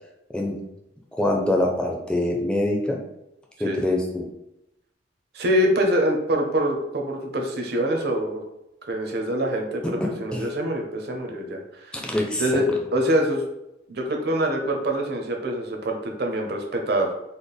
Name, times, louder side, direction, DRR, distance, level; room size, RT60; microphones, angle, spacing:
voice 1, 1.1-3.0 3.6-4.3 10.0-10.4 11.9-12.6, left 1 dB, 5° left, 0 dB, 0.4 m, -24 dB
voice 2, 5.3-8.4 8.9-12.1 12.4-13.4 13.9-17.1, equal, 55° right, 2 dB, 0.6 m, -25 dB
4.1 x 2.0 x 3.3 m, 0.87 s
head